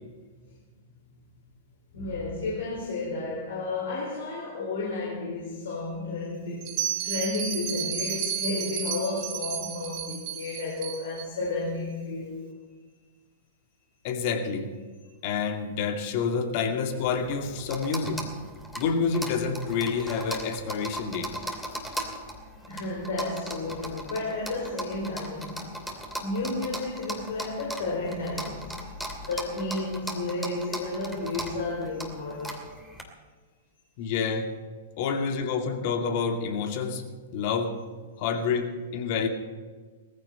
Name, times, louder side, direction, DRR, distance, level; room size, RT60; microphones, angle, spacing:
voice 1, 1.9-12.5 22.7-25.7 26.2-28.9 29.2-32.7 38.1-38.3, left 2 dB, 65° left, 4.6 m, -32 dB
Bell, 6.6-11.2, right 8 dB, 45° right, 3.4 m, -32 dB
voice 2, 14.0-14.7 15.2-18.2 18.8-21.4 34.0-34.5 35.0-37.0 37.3-37.8 38.2-39.3, left 5 dB, 50° left, 2.2 m, -28 dB
sound 1, 17.0-33.0, equal, ahead, 2.6 m, -38 dB
19.0 x 15.0 x 4.4 m
figure-of-eight pair, 105°, 0 cm